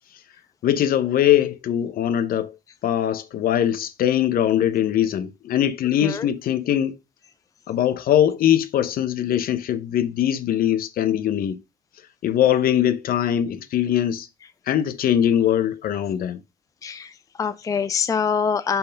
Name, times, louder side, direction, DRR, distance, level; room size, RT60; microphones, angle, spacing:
voice 1, 0.6-2.6 2.8-7.0 7.7-11.6 12.2-14.3 14.7-16.4, left 10 dB, 60° left, 0.8 m, -21 dB
voice 2, 16.8-18.8, left 6 dB, 20° left, 0.4 m, -25 dB
5.4 x 4.7 x 5.1 m
cardioid pair, 110°, 17 cm